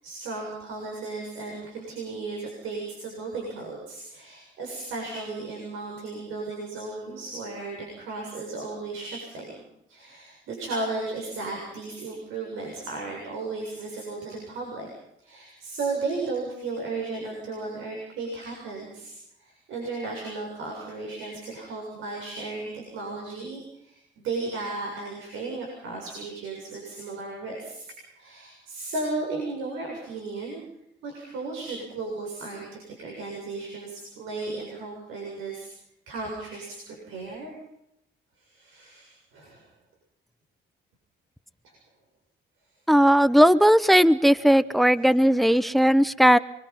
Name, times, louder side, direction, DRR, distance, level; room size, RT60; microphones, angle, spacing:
voice 1, 0.0-9.6 9.9-14.9 15.2-27.8 28.2-30.6 31.0-35.7 36.1-37.5 38.4-39.6 41.6-41.7 45.0-45.1 45.6-45.7, right 3 dB, 90° right, 0 dB, 7.5 m, -35 dB
voice 2, 42.9-46.4, equal, ahead, 16 dB, 0.9 m, -18 dB
27.0 x 22.5 x 5.7 m, 0.79 s
cardioid pair, 90°, 20 cm